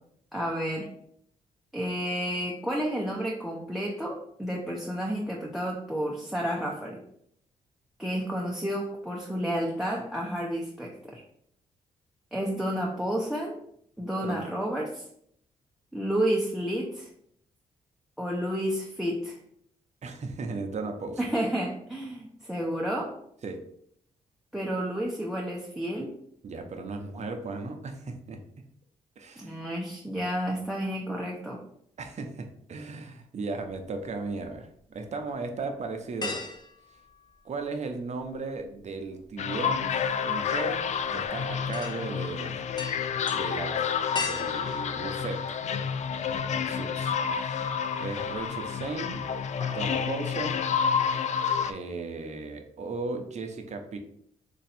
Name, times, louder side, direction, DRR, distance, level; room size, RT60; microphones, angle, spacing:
voice 1, 0.3-0.9 1.7-7.0 8.0-11.2 12.3-13.6 14.0-15.0 15.9-17.1 18.2-19.4 21.2-23.2 24.5-26.2 29.4-31.6, equal, ahead, -1 dB, 0.7 m, -31 dB
voice 2, 20.0-21.2 23.4-23.6 26.4-28.4 29.2-29.6 32.0-36.4 37.4-42.6 43.3-43.9 44.1-45.7 46.5-47.2 48.0-49.2 49.7-50.6 51.7-54.0, right 3 dB, 50° right, 5 dB, 0.7 m, -36 dB
sound 1, 33.7-34.5 35.0-35.1 36.2-37.9 38.2-46.1 46.5-46.6 48.1-48.6 48.9-49.1 49.4-50.0 50.3-50.4, left 3 dB, 30° left, 0.8 m, -40 dB
sound 2, 39.4-51.7, left 7 dB, 55° left, 0.4 m, -29 dB
3.1 x 2.6 x 4.2 m, 0.68 s
cardioid pair, 65°, 14 cm